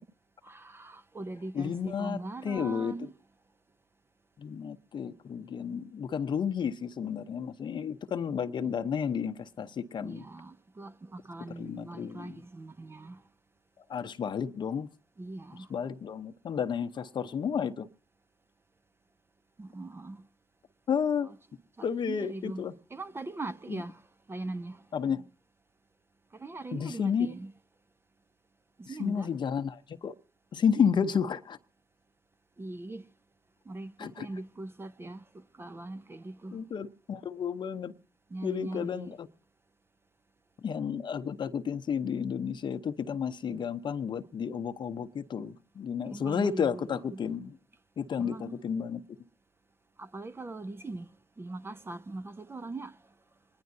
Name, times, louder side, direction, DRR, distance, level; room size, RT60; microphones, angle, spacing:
voice 1, 0.4-3.1 10.0-13.2 15.2-15.7 19.6-20.2 21.2-21.4 21.8-22.6 22.9-24.9 26.3-27.5 28.8-29.3 30.8-30.9 32.6-33.1 33.7-36.6 38.3-39.1 46.1-47.2 48.2-48.6 50.0-51.1 51.4-53.0, right 2 dB, 25° right, 0.6 m, -41 dB
voice 2, 1.5-3.1 4.4-10.3 11.6-12.4 13.9-14.9 15.7-17.9 20.9-21.3 21.8-22.7 23.7-23.8 24.9-25.2 26.7-27.3 29.0-30.1 30.5-31.6 34.0-34.3 36.5-37.9 38.4-39.3 40.6-47.6 48.0-49.0, left 7 dB, 55° left, 0.8 m, -31 dB
26.0 x 10.5 x 2.6 m
supercardioid pair, 55°, 9 cm